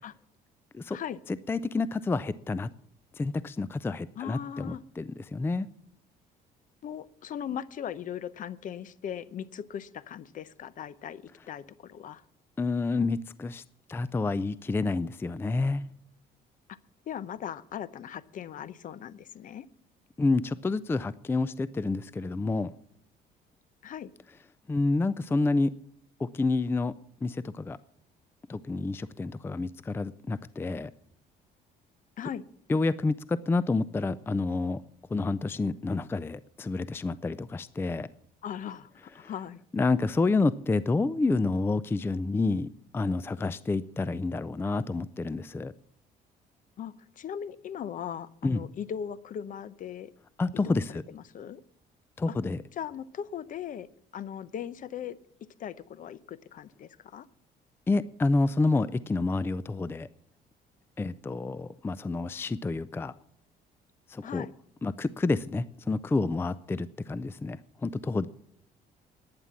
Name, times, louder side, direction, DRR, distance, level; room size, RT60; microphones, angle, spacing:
voice 1, 1.5-2.7 3.2-5.7 12.6-13.6 13.9-15.8 20.2-22.7 24.7-25.7 26.2-26.9 27.2-27.8 28.5-30.9 32.7-34.8 35.1-38.1 39.2-39.3 39.7-45.7 48.4-48.6 50.4-51.0 52.2-52.6 57.9-60.1 61.0-63.1 64.1-64.5 64.8-68.3, left 3 dB, 15° left, 17 dB, 0.4 m, -29 dB
voice 2, 4.2-4.8 6.8-12.2 17.1-19.7 23.8-24.1 32.2-32.5 38.4-38.9 39.1-39.6 46.8-50.1 50.6-50.8 51.1-51.6 52.3-52.4 52.8-53.9 54.1-55.2 55.6-57.3 64.2-64.5, left 9 dB, 50° left, 17 dB, 0.8 m, -38 dB
11.0 x 9.7 x 7.2 m, 0.71 s
cardioid pair, 110°, 17 cm